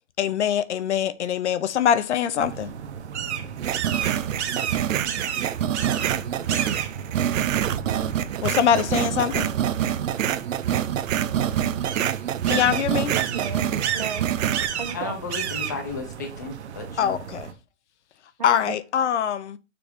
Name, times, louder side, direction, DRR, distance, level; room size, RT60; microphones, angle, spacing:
voice 1, 0.2-2.7 8.4-9.5 12.5-13.1 17.0-17.5 18.4-19.6, left 9 dB, 65° left, 0.7 m, -23 dB
sound 1, 2.4-17.5, right 8 dB, 60° right, 1.1 m, -33 dB
sound 2, 3.6-14.7, right 10 dB, 85° right, 0.7 m, -26 dB
voice 2, 13.1-14.3 14.8-15.2 18.4-18.8, right 6 dB, 40° right, 0.4 m, -35 dB
voice 3, 14.9-17.2, left 4 dB, 15° left, 0.5 m, -34 dB
6.9 x 3.2 x 5.1 m
hypercardioid pair, 180°, 38 cm